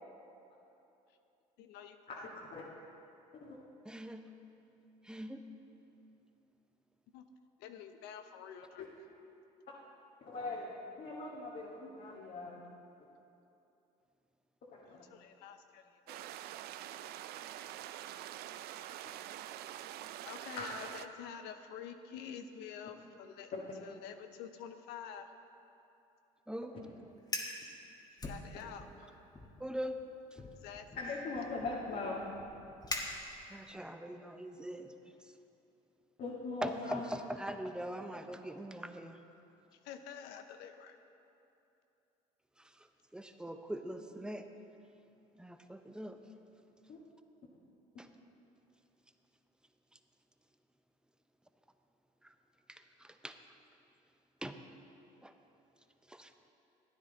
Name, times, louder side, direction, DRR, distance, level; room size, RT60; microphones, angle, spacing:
voice 1, 1.6-2.3 7.1-7.2 7.6-8.9 14.9-16.3 20.2-23.5 23.8-25.3 28.1-28.9 30.6-30.9 39.7-41.0, left 8 dB, 75° left, 7 dB, 0.6 m, -48 dB
voice 2, 3.8-4.3 5.0-5.4 26.5-26.8 29.6-30.0 30.3-30.4 33.5-35.4 36.6-39.2 42.6-44.5 45.3-46.2 48.0-48.1 52.2-52.3 52.7-53.4 54.4-54.6 55.2-55.3 56.0-56.3, equal, 5° right, 7 dB, 0.7 m, -42 dB
voice 3, 10.2-10.7 11.0-12.6 14.7-15.0 17.8-17.9 20.6-20.7 23.5-23.6 31.0-32.2 36.2-37.0 46.9-47.0, left 3 dB, 55° left, -5 dB, 1.6 m, -40 dB
sound 1, 16.1-21.1, right 12 dB, 65° right, 0.4 m, -45 dB
Fire, 27.2-27.6 28.2-29.0 29.3-29.7 30.4-33.7, left 2 dB, 20° left, 1.4 m, -43 dB
13.5 x 9.6 x 3.9 m, 2.8 s
supercardioid pair, 75°, 17 cm